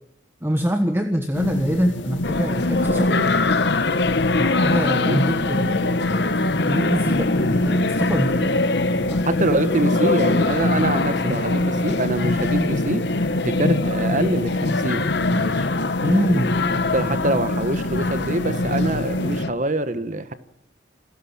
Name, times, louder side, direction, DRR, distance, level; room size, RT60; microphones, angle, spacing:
voice 1, 0.4-3.2 4.4-5.9 6.3-8.5 9.1-9.2 16.0-16.6, equal, 10° right, 5 dB, 1.4 m, -24 dB
sound 1, 1.3-19.4, left 1 dB, 85° left, 1.8 m, -26 dB
sound 2, 2.2-19.5, left 3 dB, 65° left, 1.1 m, -24 dB
voice 2, 2.9-3.3 5.1-5.2 8.4-8.6 9.3-13.0 13.4-15.7 16.9-20.3, right 2 dB, 40° right, 12 dB, 1.2 m, -25 dB
27.5 x 14.0 x 7.4 m, 0.79 s
head